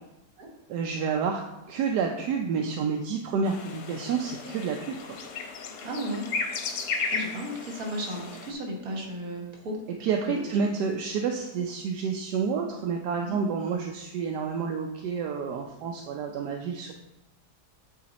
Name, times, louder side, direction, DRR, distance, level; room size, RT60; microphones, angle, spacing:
voice 1, 0.7-1.4 1.7-5.2 10.0-16.9, right 5 dB, 80° right, 2 dB, 1.2 m, -29 dB
sound 1, 3.4-8.5, left 4 dB, 65° left, 1.1 m, -34 dB
voice 2, 5.8-6.3 6.8-9.7 10.2-10.5 13.2-13.4, equal, 60° right, 0 dB, 1.7 m, -35 dB
8.6 x 3.2 x 4.1 m, 0.95 s
omnidirectional pair, 1.7 m